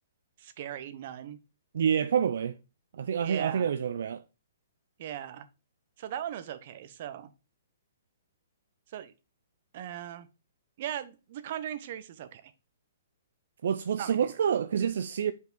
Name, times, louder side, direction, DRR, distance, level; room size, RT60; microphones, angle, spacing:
voice 1, 0.4-1.4 3.2-3.7 5.0-5.5 6.0-7.3 8.9-9.1 9.7-10.3 10.8-12.5 14.0-14.4, right 10 dB, 50° right, 0.8 m, -38 dB
voice 2, 1.7-2.6 2.9-4.2 13.6-15.3, right 8 dB, 70° right, 0.4 m, -27 dB
5.6 x 4.6 x 3.8 m
hypercardioid pair, 135°, 0 cm